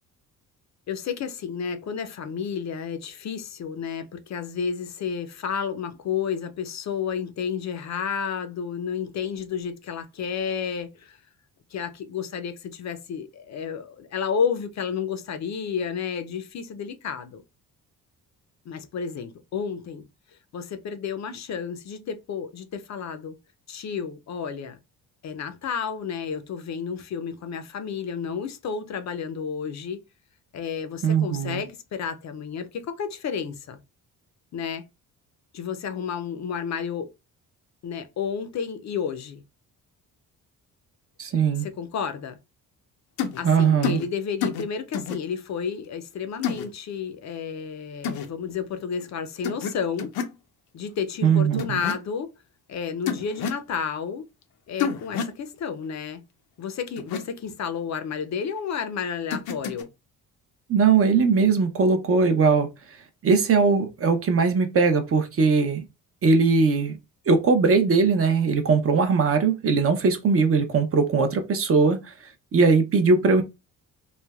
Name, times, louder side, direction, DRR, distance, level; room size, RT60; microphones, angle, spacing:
voice 1, 0.9-11.2 11.7-17.4 18.7-20.0 20.5-23.4 23.7-24.8 25.2-30.0 30.5-33.8 34.5-34.8 35.5-37.1 37.8-39.4 41.6-42.4 43.4-50.1 50.7-52.3 52.7-54.3 54.7-56.2 56.6-59.9, left 6 dB, 50° left, 0.5 m, -31 dB
voice 2, 31.0-31.6 41.2-41.7 43.4-44.0 51.2-51.8 60.7-62.7 63.2-65.8 66.2-67.0 67.3-72.1 72.5-73.4, right 5 dB, 40° right, 0.5 m, -20 dB
sound 1, 43.2-43.4 43.8-44.1 44.4-44.6 44.9-45.2 46.4-46.7 48.0-48.3 49.4-49.7 50.0-50.4 51.6-52.0 53.1-53.6 54.8-55.4 57.0-57.2 59.3-59.8, left 7 dB, 90° left, 0.6 m, -28 dB
3.2 x 2.1 x 2.3 m
cardioid pair, 95°, 36 cm